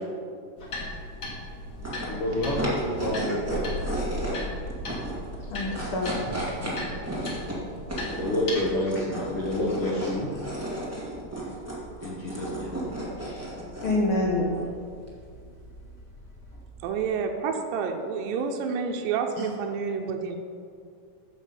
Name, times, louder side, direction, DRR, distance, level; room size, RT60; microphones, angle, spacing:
sound 1, 0.6-8.5, left 1 dB, 40° left, 1.7 m, -36 dB
sound 2, 1.7-17.0, right 1 dB, 10° right, 0.9 m, -35 dB
voice 1, 2.1-3.7 6.6-6.7 8.1-10.3 12.0-12.8 13.2-13.5, left 1 dB, 60° left, -5 dB, 1.6 m, -29 dB
sound 3, 2.3-3.1 6.1-7.2, right 2 dB, 60° right, 2.3 m, -41 dB
voice 2, 3.3-3.6 5.5-6.3 8.5-8.6 9.8-10.1 13.8-14.5 19.4-19.5, left 2 dB, 90° left, -2 dB, 1.1 m, -28 dB
voice 3, 16.8-20.4, right 6 dB, 85° right, 4 dB, 2.4 m, -29 dB
8.2 x 7.3 x 5.3 m, 2.3 s
omnidirectional pair, 3.9 m